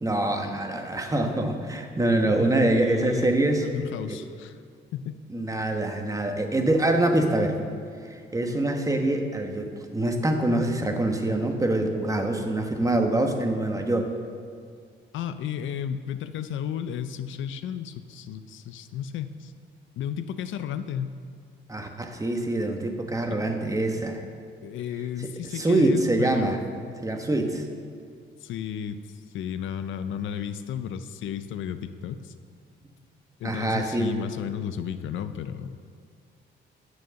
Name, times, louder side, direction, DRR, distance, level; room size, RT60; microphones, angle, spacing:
voice 1, 0.0-3.7 4.1-4.2 5.3-7.6 8.1-14.1 21.7-24.2 25.2-26.6 27.0-27.6 33.4-34.2, right 1 dB, 15° right, 4 dB, 1.1 m, -25 dB
voice 2, 2.3-4.6 4.9-5.2 15.1-19.5 20.0-21.2 23.3-23.6 24.6-26.6 28.4-32.3 33.4-35.8, left 9 dB, 75° left, 11 dB, 0.5 m, -33 dB
9.3 x 6.3 x 6.9 m, 2.2 s
cardioid pair, 90°, 20 cm